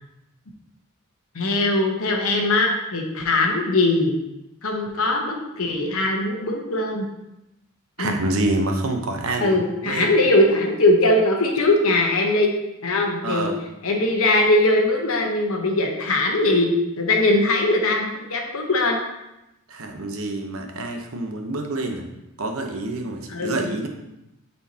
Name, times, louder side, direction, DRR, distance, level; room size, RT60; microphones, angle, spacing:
voice 1, 1.3-4.2 4.6-7.1 8.0-8.1 9.4-12.5 12.8-13.5 13.8-16.7 17.0-19.0 23.3-23.7, left 2 dB, 75° left, 2 dB, 1.0 m, -20 dB
voice 2, 8.0-10.1 13.2-13.6 19.7-22.1 22.4-23.9, right 2 dB, 70° right, 3 dB, 0.9 m, -27 dB
9.0 x 4.4 x 2.8 m, 0.92 s
head